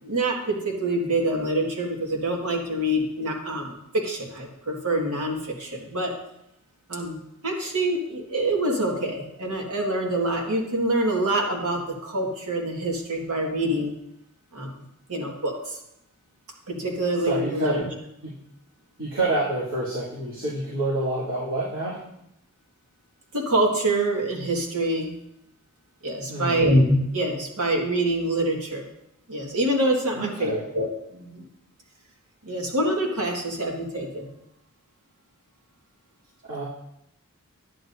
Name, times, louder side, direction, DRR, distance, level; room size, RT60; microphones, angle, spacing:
voice 1, 0.0-6.1 6.9-7.2 7.4-13.9 14.5-14.7 15.1-15.7 16.7-17.8 23.3-25.1 26.0-28.9 29.3-31.4 32.4-34.3, right 1 dB, 85° right, 0 dB, 1.8 m, -25 dB
voice 2, 17.2-17.8 18.2-18.3 19.0-22.0 26.3-26.7 30.1-30.6 36.4-36.6, right 2 dB, 65° right, -11 dB, 2.9 m, -28 dB
10.5 x 9.5 x 2.7 m, 0.80 s
head